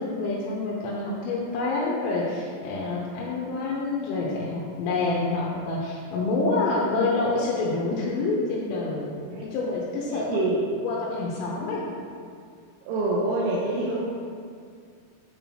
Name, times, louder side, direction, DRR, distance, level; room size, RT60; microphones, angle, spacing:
voice 1, 0.0-9.1 9.5-10.5 10.8-11.8, left 3 dB, 80° left, -5 dB, 3.3 m, -27 dB
voice 2, 10.1-10.6 12.9-14.1, right 2 dB, 85° right, -6 dB, 3.6 m, -26 dB
9.8 x 5.4 x 3.0 m, 2.2 s
omnidirectional pair, 5.9 m